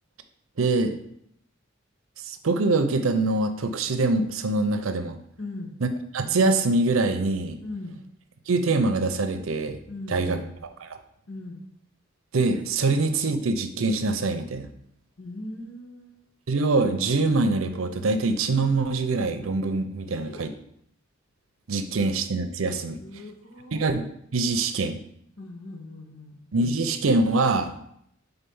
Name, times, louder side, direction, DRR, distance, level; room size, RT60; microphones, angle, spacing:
voice 1, 0.6-0.9 2.2-5.2 5.8-5.9 6.1-7.6 8.5-9.8 10.1-10.4 12.3-14.7 16.5-20.5 21.7-23.0 23.7-25.0 26.5-27.7, right 3 dB, 85° right, 8 dB, 0.6 m, -24 dB
voice 2, 5.4-5.7 7.6-7.9 9.9-10.5 11.3-11.6 15.2-16.2 20.0-20.5 22.8-23.8 25.4-26.4, left 2 dB, 75° left, 1 dB, 1.2 m, -39 dB
4.4 x 4.0 x 5.4 m, 0.72 s
head